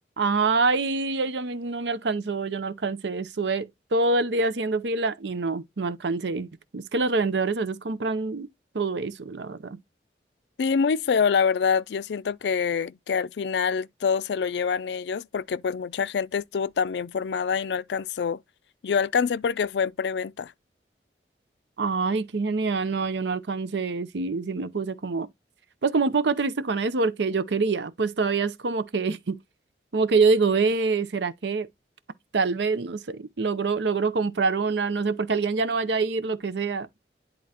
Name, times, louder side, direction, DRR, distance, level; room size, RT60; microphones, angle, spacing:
voice 1, 0.2-8.5 8.7-9.8 21.8-25.3 25.8-29.4 29.9-31.7 32.3-36.9, right 4 dB, 85° right, 0.6 m, -25 dB
voice 2, 10.6-18.4 18.8-20.5, left 6 dB, 80° left, 0.4 m, -26 dB
10.5 x 3.8 x 2.9 m
head